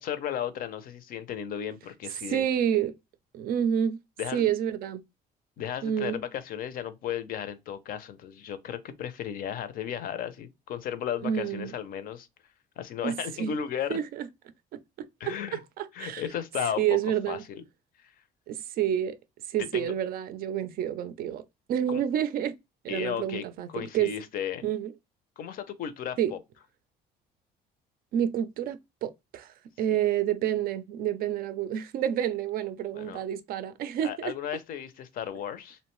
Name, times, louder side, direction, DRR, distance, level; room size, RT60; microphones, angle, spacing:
voice 1, 0.0-2.5 4.2-4.5 5.6-12.3 12.8-14.0 15.2-15.6 15.9-17.0 17.3-17.6 18.0-18.1 19.7-19.9 21.9-22.0 22.9-24.7 25.4-26.4 29.9-30.0 33.0-33.2 34.0-35.8, left 9 dB, 60° left, 0.5 m, -35 dB
voice 2, 2.3-2.9 3.3-4.0 4.3-5.0 5.8-6.2 11.2-11.7 13.0-13.5 13.9-14.3 14.7-16.3 16.8-17.4 18.5-19.2 19.5-21.4 21.7-22.5 22.8-24.1 24.6-24.9 26.2-26.3 28.1-34.3, right 10 dB, 60° right, 0.4 m, -29 dB
2.6 x 2.1 x 3.0 m
cardioid pair, 110°, 17 cm